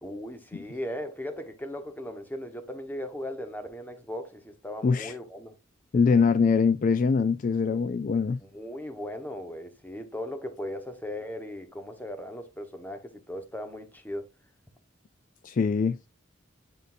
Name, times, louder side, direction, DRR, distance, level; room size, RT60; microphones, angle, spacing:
voice 1, 0.0-5.5 8.4-14.3, left 1 dB, 10° left, 1.1 m, -37 dB
voice 2, 4.8-5.1 5.9-8.4 15.4-16.0, left 5 dB, 45° left, 0.3 m, -23 dB
9.2 x 4.0 x 2.5 m
head